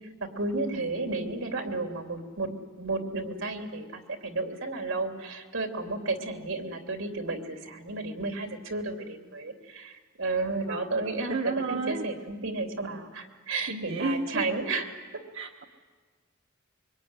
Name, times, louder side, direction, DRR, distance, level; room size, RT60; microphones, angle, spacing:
voice 1, 0.2-2.5 2.8-11.4 11.7-14.9 15.1-15.2, right 3 dB, 85° right, 4 dB, 3.0 m, -32 dB
voice 2, 10.7-12.1 13.7-14.5 15.3-15.6, right 3 dB, 65° right, 2 dB, 1.3 m, -32 dB
24.5 x 24.0 x 9.7 m, 1.5 s
head